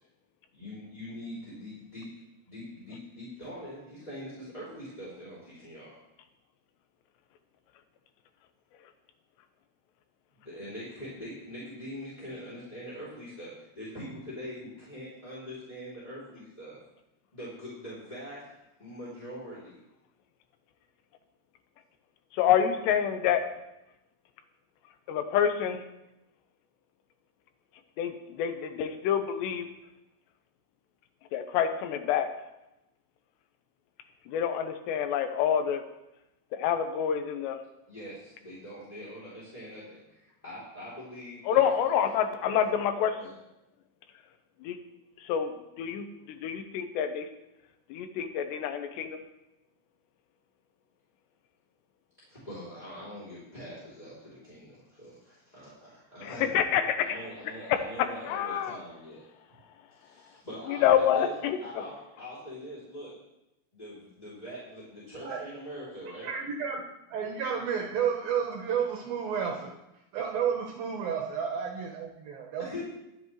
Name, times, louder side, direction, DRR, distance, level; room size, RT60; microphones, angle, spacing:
voice 1, 0.5-2.1 2.5-6.0 10.4-16.8 17.3-19.8 37.9-41.6 43.2-43.3 52.3-56.5 57.0-59.2 60.0-61.3 61.6-63.2 63.7-66.3 72.6-72.8, equal, 10° left, -9 dB, 2.8 m, -43 dB
voice 2, 22.3-23.5 25.1-25.8 28.0-29.7 31.3-32.3 34.3-35.8 36.5-37.6 41.5-43.3 44.6-44.8 45.2-45.5 45.8-47.3 47.9-49.2 56.2-57.2 58.3-58.8 60.7-61.6, left 9 dB, 85° left, 7 dB, 3.2 m, -27 dB
voice 3, 66.2-66.8 67.1-69.7 70.1-72.7, right 7 dB, 70° right, 1 dB, 2.6 m, -31 dB
22.0 x 8.0 x 3.2 m, 0.90 s
omnidirectional pair, 4.8 m